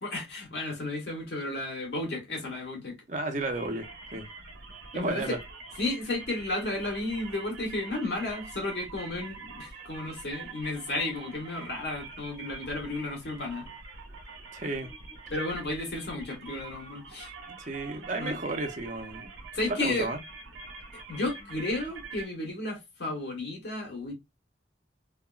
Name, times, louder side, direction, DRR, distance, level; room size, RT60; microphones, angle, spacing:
voice 1, 0.0-2.9 4.9-5.4 5.8-13.7 15.3-17.3 18.2-18.4 19.5-20.1 21.1-24.1, left 2 dB, 65° left, 1.4 m, -33 dB
voice 2, 3.1-3.8 4.1-4.3 4.9-5.4 14.5-14.9 17.6-19.3 19.7-20.2, right 2 dB, 40° right, 0.6 m, -32 dB
sound 1, 3.4-22.3, right 4 dB, 85° right, 1.0 m, -45 dB
3.5 x 2.2 x 2.3 m
head